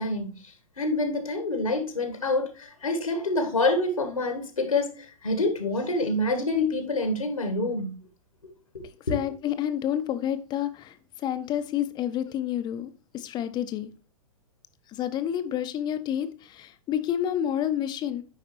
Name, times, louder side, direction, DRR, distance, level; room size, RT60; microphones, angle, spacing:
voice 1, 0.0-7.9 8.7-9.2, left 2 dB, 80° left, 1.5 m, -27 dB
voice 2, 9.1-13.9 14.9-18.2, left 10 dB, 25° left, 0.8 m, -29 dB
9.6 x 5.0 x 3.0 m
figure-of-eight pair, 105°, 18 cm